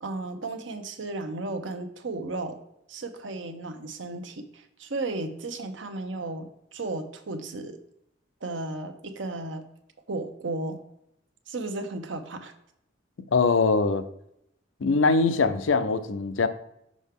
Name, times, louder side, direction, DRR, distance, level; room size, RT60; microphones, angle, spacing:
voice 1, 0.0-2.6 2.9-7.8 8.4-9.7 10.1-10.8 11.5-12.5, right 2 dB, 75° right, 0.8 m, -34 dB
voice 2, 13.3-14.0 14.8-16.5, left 4 dB, 85° left, 0.5 m, -22 dB
6.1 x 5.6 x 3.6 m
head